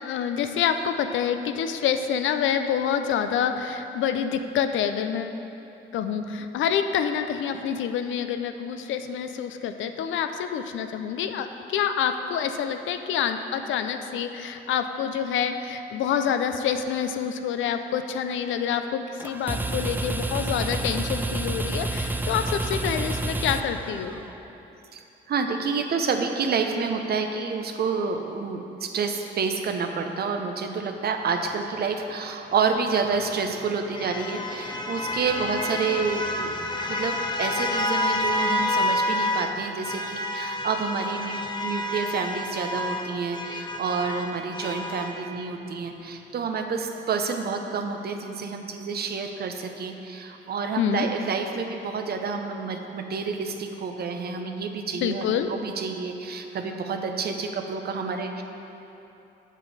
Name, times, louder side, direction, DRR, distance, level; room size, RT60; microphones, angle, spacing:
voice 1, 0.0-5.4 5.9-24.1 50.8-51.1 55.0-55.5, left 8 dB, 75° left, 8 dB, 0.5 m, -27 dB
Gatling Gun, 19.2-24.4, right 2 dB, 10° right, 0.3 m, -29 dB
voice 2, 25.3-36.5 36.9-58.4, right 5 dB, 55° right, 5 dB, 0.7 m, -29 dB
sound 1, 32.9-39.5 39.8-45.2, left 1 dB, 20° left, 0.6 m, -29 dB
7.4 x 7.0 x 4.1 m, 2.9 s
cardioid pair, 90°, 20 cm